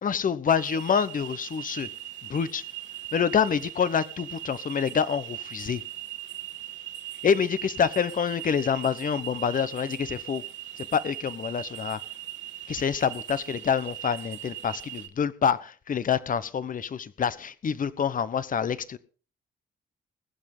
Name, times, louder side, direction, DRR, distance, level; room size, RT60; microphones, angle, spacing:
voice 1, 0.0-1.9 2.3-2.6 3.1-5.8 7.2-10.4 10.8-12.0 12.7-19.0, left 7 dB, 45° left, 1.1 m, -27 dB
sound 1, 0.6-15.1, right 13 dB, 70° right, 2.3 m, -40 dB
20.5 x 7.7 x 5.5 m
cardioid pair, 90°, 20 cm